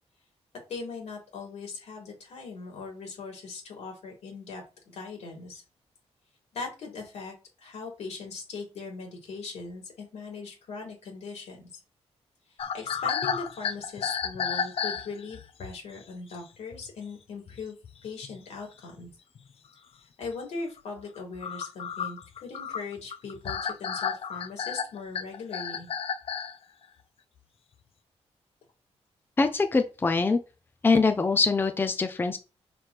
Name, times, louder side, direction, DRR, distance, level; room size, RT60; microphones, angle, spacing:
voice 1, 0.7-5.6 6.5-7.3 7.6-11.6 12.7-17.8 18.0-19.1 20.2-25.9, left 4 dB, 80° left, -1 dB, 3.8 m, -39 dB
sound 1, 12.6-15.5 16.3-16.4 16.7-16.9 17.5-17.6 17.8-18.4 19.0-19.1 19.4-19.5 20.2-20.4 20.8-26.6, left 7 dB, 60° left, 0.6 m, -32 dB
voice 2, 29.4-30.4 30.8-32.4, left 4 dB, 20° left, 8 dB, 0.6 m, -23 dB
6.2 x 5.9 x 3.4 m, 0.31 s
wide cardioid pair, 150°, 11 cm